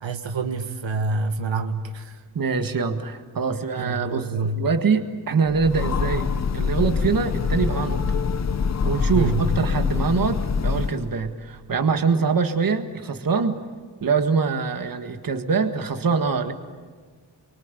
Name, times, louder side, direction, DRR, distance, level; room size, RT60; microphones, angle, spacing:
voice 1, 0.0-2.2 3.8-4.6 9.1-9.4, right 3 dB, 85° right, 6 dB, 1.9 m, -27 dB
voice 2, 2.4-4.3 4.5-6.2 6.5-8.0 8.8-13.6 14.0-16.5, right 5 dB, 50° right, 6 dB, 1.8 m, -24 dB
Train, 5.5-11.2, left 5 dB, 35° left, 0.9 m, -25 dB
29.0 x 23.5 x 8.5 m, 1.5 s
wide cardioid pair, 170°, 44 cm